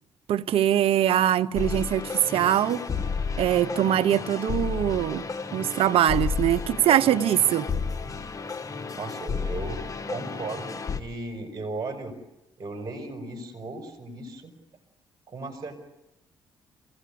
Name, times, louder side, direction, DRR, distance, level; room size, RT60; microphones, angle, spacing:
voice 1, 0.3-2.8 3.4-7.7, right 11 dB, 70° right, 0.9 m, -23 dB
sound 1, 1.5-11.0, left 5 dB, 35° left, 1.8 m, -32 dB
voice 2, 9.0-9.8 10.1-12.1 12.6-14.5 15.3-15.8, right 2 dB, 35° right, 5.3 m, -36 dB
27.5 x 17.0 x 8.6 m
supercardioid pair, 55°, 10 cm